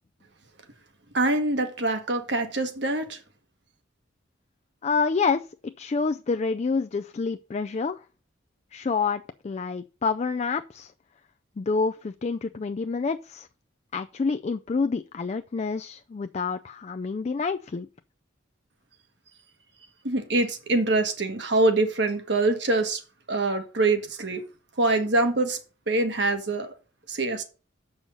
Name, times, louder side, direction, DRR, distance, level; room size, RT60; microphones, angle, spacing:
voice 1, 1.1-3.2 20.0-23.0 23.3-24.4 24.8-25.6 25.9-26.7 27.1-27.4, right 2 dB, 60° right, 1.5 m, -24 dB
voice 2, 4.8-8.0 8.7-10.9 11.6-13.5 13.9-17.9, left 4 dB, 35° left, 0.3 m, -28 dB
7.5 x 6.3 x 5.5 m
head